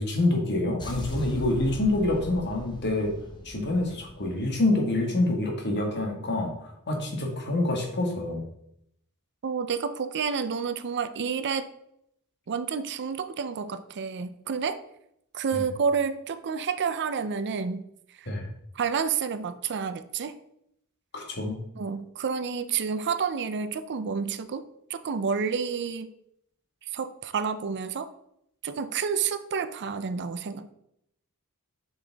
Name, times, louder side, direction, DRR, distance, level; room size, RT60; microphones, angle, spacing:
voice 1, 0.0-3.1 3.4-8.4 15.5-15.6 18.3-18.5 21.1-21.6, left 2 dB, 50° left, 1 dB, 1.7 m, -27 dB
sound 1, 0.8-4.9, left 1 dB, 20° left, 1.0 m, -40 dB
voice 2, 9.4-11.7 12.5-14.8 15.3-17.8 18.2-18.3 18.7-20.3 21.8-24.6 24.9-26.1 26.8-28.1 28.6-30.7, right 6 dB, 50° right, 12 dB, 0.5 m, -29 dB
7.5 x 5.5 x 3.4 m, 0.75 s
head